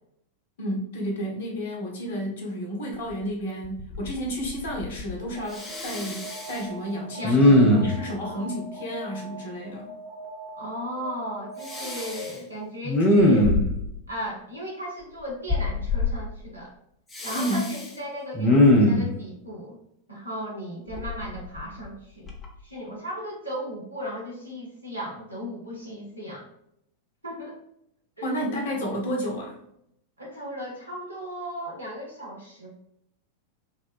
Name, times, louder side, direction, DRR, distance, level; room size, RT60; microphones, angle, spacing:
voice 1, 0.6-9.9 17.3-17.7 28.2-29.6, equal, 60° left, -1 dB, 0.7 m, -31 dB
Respiratory sounds, 3.1-3.2 3.6-4.2 4.4-5.2 5.5-6.6 7.2-8.1 11.7-12.3 12.8-13.9 15.5-16.1 17.1-17.8 18.3-19.1 20.9-21.9 22.3-22.5, left 1 dB, 15° left, 0.5 m, -21 dB
Alarm, 5.4-12.4, right 2 dB, 25° right, 0.7 m, -42 dB
voice 2, 7.2-7.8 8.2-8.5 10.5-13.5 14.1-16.7 17.2-19.8 20.1-22.3 22.6-26.5 27.2-27.6 28.2-28.4 30.2-32.7, equal, 85° right, -3 dB, 0.6 m, -36 dB
2.7 x 2.1 x 2.4 m, 0.75 s
figure-of-eight pair, 90°, 0 cm